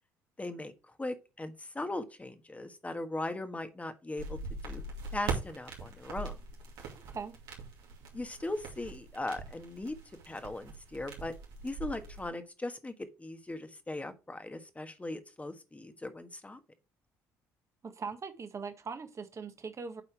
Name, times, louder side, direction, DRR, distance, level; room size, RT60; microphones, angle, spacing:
voice 1, 0.4-0.7 1.0-4.8 5.1-6.4 8.1-10.0 10.3-11.3 11.6-16.6, left 2 dB, 15° left, 1.4 m, -39 dB
sound 1, 4.2-12.3, right 4 dB, 75° right, 2.5 m, -41 dB
voice 2, 6.9-7.3 17.8-20.0, right 5 dB, 40° right, 1.5 m, -41 dB
8.1 x 4.3 x 4.5 m
hypercardioid pair, 65°, 8 cm